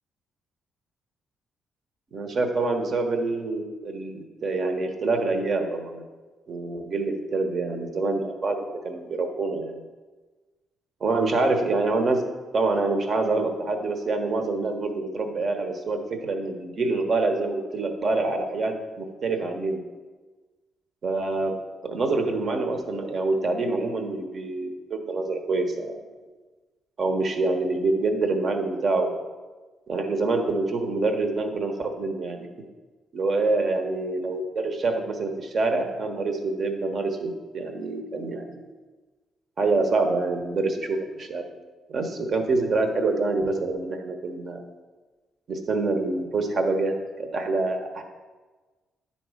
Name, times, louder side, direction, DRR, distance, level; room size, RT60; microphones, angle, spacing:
voice 1, 2.1-6.0 6.5-9.8 11.0-12.2 12.5-19.8 21.0-21.6 21.8-26.0 27.0-29.1 29.9-32.5 33.1-38.7 39.6-41.4 41.9-44.6 45.5-46.9 47.2-48.0, right 3 dB, 50° right, 5 dB, 1.1 m, -26 dB
9.9 x 4.2 x 4.9 m, 1.3 s
cardioid pair, 90°, 0 cm